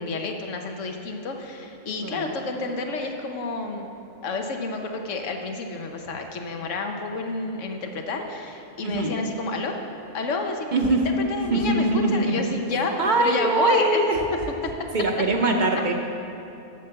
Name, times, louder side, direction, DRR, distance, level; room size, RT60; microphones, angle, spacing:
voice 1, 0.0-3.9 4.2-9.8 10.1-11.0 11.3-14.0, left 3 dB, 85° left, 3 dB, 1.2 m, -29 dB
voice 2, 2.0-2.4 8.8-9.2 10.7-11.1 11.5-12.5 13.0-14.2 14.9-15.9, right 2 dB, 45° right, 2 dB, 0.8 m, -22 dB
8.2 x 7.0 x 6.8 m, 2.8 s
omnidirectional pair, 1.2 m